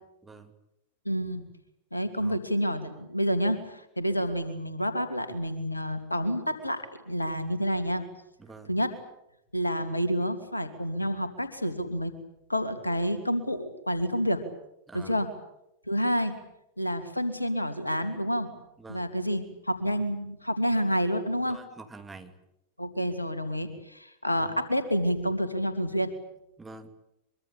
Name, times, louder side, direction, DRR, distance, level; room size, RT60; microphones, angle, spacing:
voice 1, 1.0-1.4 1.9-8.0 8.7-8.9 9.5-12.1 12.5-14.4 14.9-15.3 15.9-16.3 16.8-18.5 18.9-21.6 22.8-26.1, equal, 85° left, 9 dB, 2.8 m, -29 dB
voice 2, 8.4-8.7 14.9-15.2 18.8-19.1 21.5-22.3 24.3-24.5 26.6-26.9, right 3 dB, 10° right, 6 dB, 2.7 m, -46 dB
24.0 x 24.0 x 8.9 m, 0.83 s
figure-of-eight pair, 90°, 0 cm